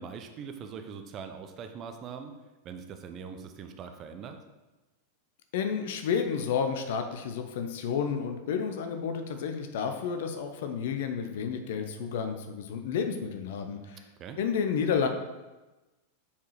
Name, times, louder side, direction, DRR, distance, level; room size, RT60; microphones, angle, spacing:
voice 1, 0.0-2.3 2.6-4.4 14.2-14.4, right 6 dB, 30° right, 6 dB, 0.7 m, -42 dB
voice 2, 5.5-14.0 14.4-15.1, left 6 dB, 55° left, 6 dB, 0.8 m, -31 dB
7.0 x 4.7 x 4.9 m, 1.1 s
figure-of-eight pair, 90°, 0 cm